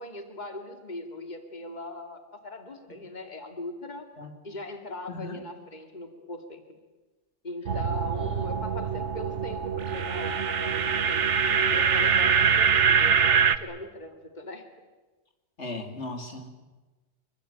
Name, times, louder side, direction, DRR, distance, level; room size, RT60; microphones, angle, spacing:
voice 1, 0.0-4.1 4.4-6.8 7.4-14.7, left 2 dB, 40° left, 6 dB, 2.4 m, -39 dB
sound 1, 7.7-13.6, right 7 dB, 85° right, 1.4 m, -24 dB
voice 2, 15.6-16.5, left 2 dB, 80° left, 5 dB, 3.1 m, -36 dB
25.5 x 22.5 x 8.9 m, 1.2 s
omnidirectional pair, 1.2 m